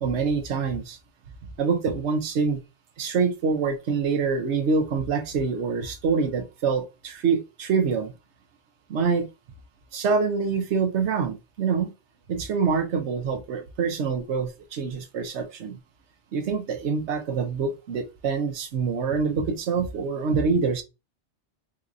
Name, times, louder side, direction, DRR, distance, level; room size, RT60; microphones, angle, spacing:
voice 1, 0.0-1.0 1.6-2.6 3.0-8.1 8.9-9.3 9.9-11.9 12.3-15.8 16.3-20.8, right 5 dB, 75° right, 1.0 m, -25 dB
3.9 x 2.8 x 2.5 m
omnidirectional pair, 1.2 m